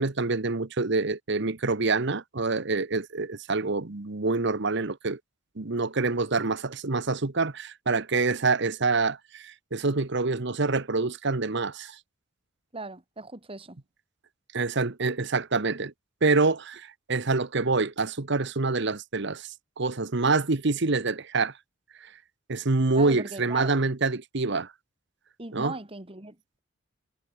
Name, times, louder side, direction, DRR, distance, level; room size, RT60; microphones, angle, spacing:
voice 1, 0.0-5.2 5.6-12.0 14.5-15.9 16.2-19.5 19.8-21.5 22.5-24.7 25.5-25.7, right 3 dB, 60° right, 1.2 m, -26 dB
voice 2, 12.7-13.8 22.9-23.8 25.4-26.6, right 3 dB, 30° right, 2.3 m, -39 dB
head